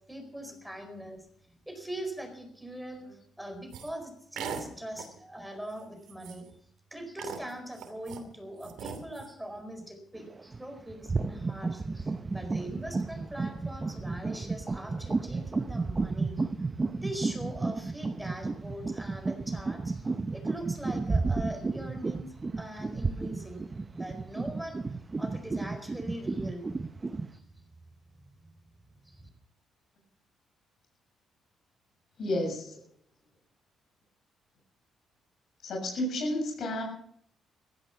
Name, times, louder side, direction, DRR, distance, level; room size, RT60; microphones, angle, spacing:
voice 1, 0.1-1.3 1.7-6.5 6.9-16.5 16.9-23.6 23.9-24.8 25.2-26.7 27.3-27.7 28.4-28.5 29.0-29.2, right 1 dB, 5° right, 7 dB, 4.4 m, -42 dB
sound 1, 3.7-3.9 4.4-4.7 5.0-5.2 5.7-5.8 6.1-6.5 7.2-8.2 8.6-9.3, right 7 dB, 85° right, 2.9 m, -40 dB
sound 2, 10.1-10.6 10.9-27.3, right 3 dB, 25° right, 0.8 m, -32 dB
voice 2, 32.2-32.8 35.6-36.8, left 1 dB, 65° left, 1 dB, 7.2 m, -31 dB
16.0 x 14.0 x 5.8 m, 0.65 s
cardioid pair, 90°, 0 cm